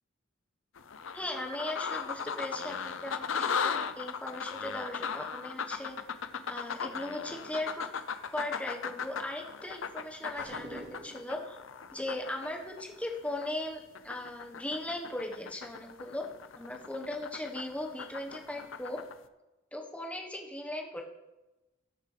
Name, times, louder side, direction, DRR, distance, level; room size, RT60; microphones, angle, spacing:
sound 1, 0.8-13.6 13.9-19.1, left 6 dB, 70° left, 0.6 m, -37 dB
voice 1, 1.1-6.0 6.5-7.9 8.3-11.6 11.9-16.2 16.6-19.0 19.7-21.0, left 1 dB, 5° left, 1 dB, 1.2 m, -38 dB
sound 2, 10.4-11.4, right 1 dB, 55° right, 3.5 m, -46 dB
19.0 x 6.7 x 3.3 m, 1.0 s
head